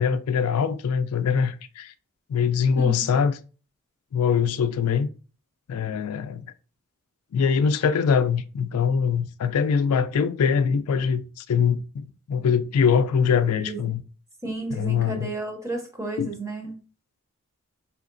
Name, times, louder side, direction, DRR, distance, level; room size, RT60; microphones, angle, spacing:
voice 1, 0.0-1.9 2.3-3.4 4.1-5.1 5.7-6.5 7.3-14.0 14.7-15.3 16.2-16.3, left 6 dB, 85° left, 0.3 m, -23 dB
voice 2, 14.4-16.8, right 2 dB, 15° right, 0.7 m, -32 dB
5.0 x 2.8 x 2.5 m
head